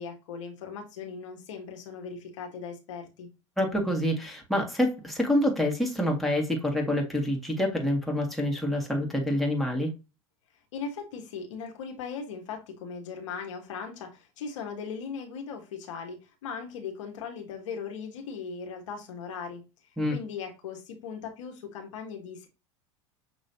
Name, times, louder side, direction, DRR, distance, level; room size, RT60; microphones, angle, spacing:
voice 1, 0.0-3.3 10.7-19.6 20.1-22.5, left 6 dB, 75° left, 1.3 m, -38 dB
voice 2, 3.6-9.9 20.0-20.1, left 1 dB, ahead, 1.7 m, -27 dB
6.3 x 3.1 x 2.7 m
hypercardioid pair, 90°, 16 cm